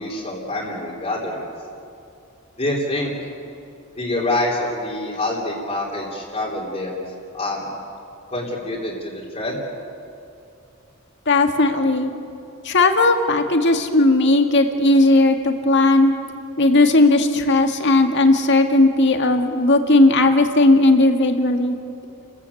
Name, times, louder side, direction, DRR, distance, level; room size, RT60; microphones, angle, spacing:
voice 1, 0.0-1.4 2.6-3.1 3.9-7.0 7.3-7.7 8.3-9.6, left 1 dB, 30° left, -4 dB, 3.4 m, -26 dB
voice 2, 11.3-12.1 12.6-16.1 16.6-21.8, left 2 dB, 55° left, 5 dB, 1.9 m, -16 dB
30.0 x 15.0 x 8.5 m, 2.7 s
head